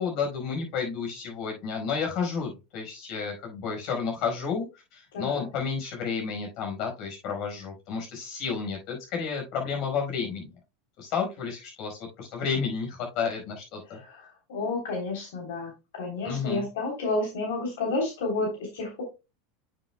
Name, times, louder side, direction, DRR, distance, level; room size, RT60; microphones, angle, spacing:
voice 1, 0.0-4.6 4.9-10.5 11.0-14.0 16.2-16.6, left 6 dB, 50° left, 1 dB, 4.8 m, -31 dB
voice 2, 5.1-5.5 14.0-19.0, left 2 dB, 80° left, 0 dB, 3.3 m, -31 dB
9.1 x 7.5 x 2.2 m, 0.26 s
supercardioid pair, 130°, 0 cm